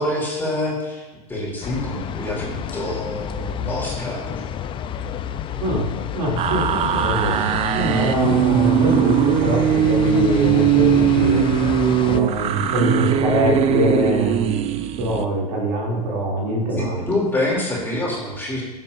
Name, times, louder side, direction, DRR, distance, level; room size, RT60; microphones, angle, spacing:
voice 1, 0.0-4.4 8.2-8.4 16.7-18.7, left 1 dB, 10° left, -4 dB, 3.1 m, -26 dB
sound 1, 1.6-12.2, left 9 dB, 25° left, 0.5 m, -29 dB
voice 2, 5.6-5.9 6.1-7.5 7.7-11.4 12.0-14.6 15.0-17.0, equal, 70° right, -4 dB, 2.9 m, -23 dB
sound 2, 6.4-15.2, right 10 dB, 30° right, 0.5 m, -20 dB
14.5 x 7.5 x 2.7 m, 1.2 s
hypercardioid pair, 100°, 20 cm